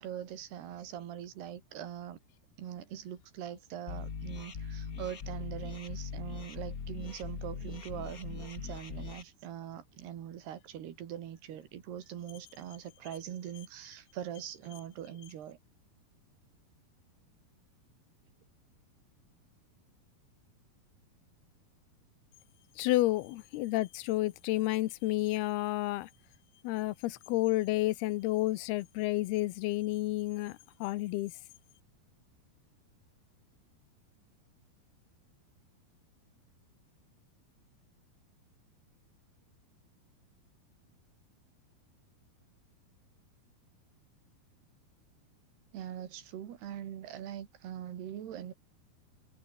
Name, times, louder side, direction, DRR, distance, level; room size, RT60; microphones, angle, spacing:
voice 1, 0.0-2.2 2.6-15.6 45.7-48.5, right 10 dB, 80° right, 4.3 m, -42 dB
sound 1, 3.9-9.2, left 6 dB, 65° left, 0.9 m, -41 dB
voice 2, 22.8-26.1 26.6-31.3, left 17 dB, 80° left, 2.8 m, -30 dB
omnidirectional pair, 4.6 m